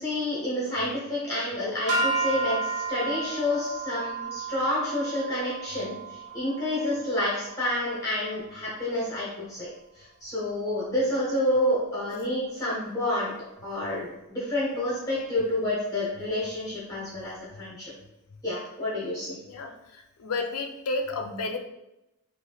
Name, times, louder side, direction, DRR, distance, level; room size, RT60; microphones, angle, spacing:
voice 1, 0.0-9.7 10.0-13.4 13.6-17.9 18.4-19.4, left 1 dB, 15° left, -8 dB, 0.7 m, -29 dB
sound 1, 1.9-8.2, right 3 dB, 85° right, 0.8 m, -32 dB
voice 2, 19.5-21.6, left 3 dB, 70° left, 4 dB, 0.4 m, -32 dB
3.2 x 2.4 x 2.3 m, 0.90 s
head